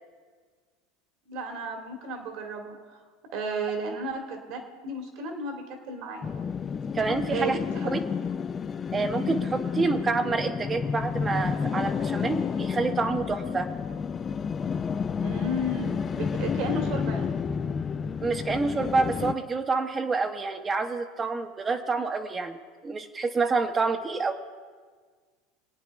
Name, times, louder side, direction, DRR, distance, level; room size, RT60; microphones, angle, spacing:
voice 1, 1.3-3.0 3.3-6.3 7.3-7.9 15.2-17.3, right 1 dB, 65° right, 3 dB, 2.2 m, -33 dB
sound 1, 6.2-19.3, left 6 dB, 30° left, 0.5 m, -30 dB
voice 2, 6.9-7.6 7.9-8.0 8.9-13.7 18.2-24.4, right 4 dB, 25° right, 7 dB, 1.0 m, -28 dB
22.0 x 9.0 x 3.5 m, 1.6 s
hypercardioid pair, 95°, 0 cm